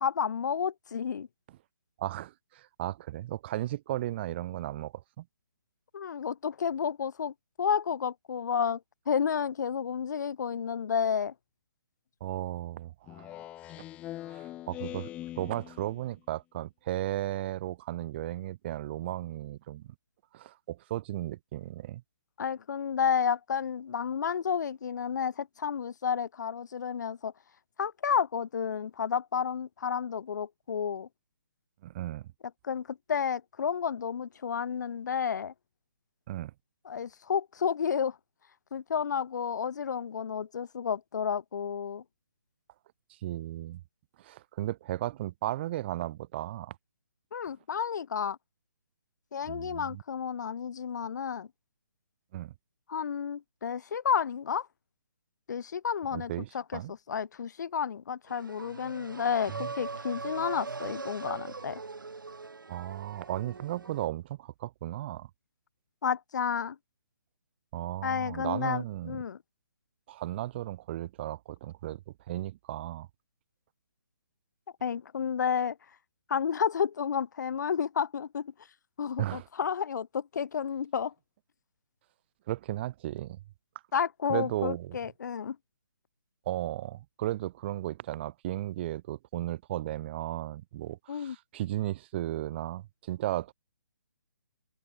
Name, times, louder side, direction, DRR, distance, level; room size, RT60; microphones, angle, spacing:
voice 1, 0.0-1.3 5.9-8.8 9.1-11.3 22.4-27.3 27.8-31.1 32.6-35.5 36.9-38.2 38.7-42.0 47.3-48.4 49.3-51.5 52.9-54.7 55.5-61.8 66.0-66.8 68.0-69.4 74.8-75.8 76.3-78.5 79.0-81.1 83.9-85.6 91.1-91.4, left 7 dB, 60° left, 0.5 m, -31 dB
voice 2, 2.0-5.2 12.2-13.4 14.3-15.1 15.4-19.9 20.3-22.0 31.8-32.2 36.3-36.5 43.2-43.8 44.2-46.7 49.5-50.0 52.3-52.5 56.1-56.9 59.5-59.7 62.7-65.3 67.7-69.2 70.1-72.0 72.3-73.1 79.2-79.5 82.5-83.4 84.3-84.9 86.4-93.5, right 14 dB, 35° right, 1.5 m, -35 dB
Speech synthesizer, 13.1-16.1, left 14 dB, 10° left, 0.5 m, -42 dB
sound 1, 58.3-64.1, right 4 dB, 85° right, 1.3 m, -41 dB
open air
hypercardioid pair, 150°, 11 cm